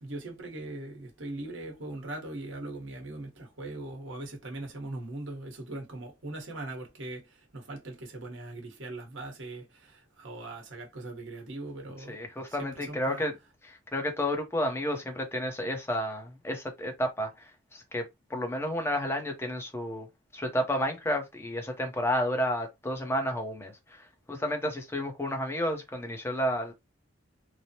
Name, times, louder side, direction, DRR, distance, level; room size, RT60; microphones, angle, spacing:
voice 1, 0.0-12.2 12.5-13.2, right 2 dB, 70° right, 1.0 m, -40 dB
voice 2, 12.1-13.3 13.7-20.1 20.3-26.7, equal, 10° left, 0.7 m, -31 dB
3.1 x 2.0 x 2.7 m
head